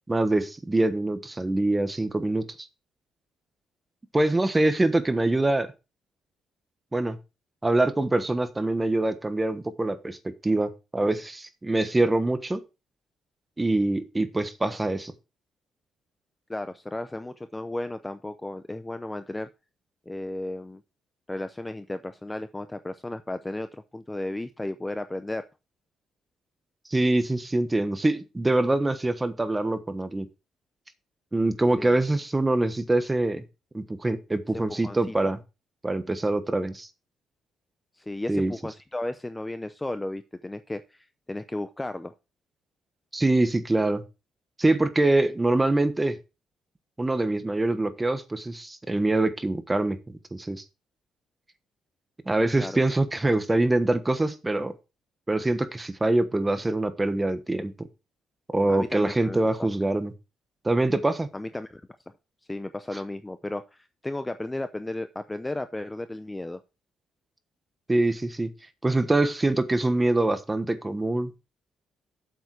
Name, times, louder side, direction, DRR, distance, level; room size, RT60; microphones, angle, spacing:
voice 1, 0.1-2.4 4.1-5.7 6.9-7.2 7.6-10.2 10.4-12.6 13.6-15.1 26.9-30.3 31.3-33.4 33.7-35.4 35.8-36.9 38.3-38.5 43.1-44.0 44.6-46.2 47.0-50.0 50.3-50.6 52.3-54.7 55.3-57.9 58.5-60.1 60.6-61.3 67.9-68.5 68.8-71.3, right 2 dB, 15° right, 10 dB, 1.2 m, -24 dB
voice 2, 16.5-19.5 20.1-20.8 21.3-25.4 31.8-31.9 34.5-35.1 38.0-42.1 52.6-52.8 58.7-59.7 61.3-61.8 62.5-66.6, left 1 dB, 10° left, 10 dB, 0.6 m, -34 dB
8.1 x 7.1 x 4.8 m, 0.27 s
cardioid pair, 125°, 0 cm